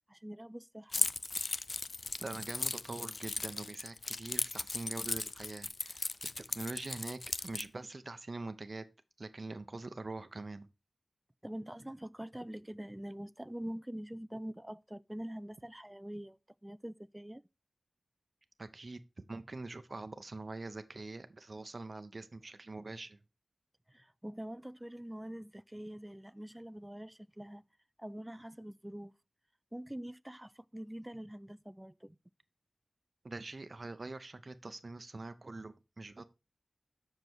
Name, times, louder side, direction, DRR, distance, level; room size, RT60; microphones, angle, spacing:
voice 1, 0.1-1.1 11.4-17.4 23.9-27.6 28.0-29.1 29.7-32.2, right 1 dB, 10° right, 0.4 m, -45 dB
Keys jangling, 0.9-7.7, left 3 dB, 50° left, 0.4 m, -37 dB
voice 2, 2.2-6.1 6.4-8.8 9.2-10.7 18.6-23.2 33.2-36.2, right 3 dB, 45° right, 0.7 m, -44 dB
7.6 x 6.5 x 4.6 m
wide cardioid pair, 100°, 0 cm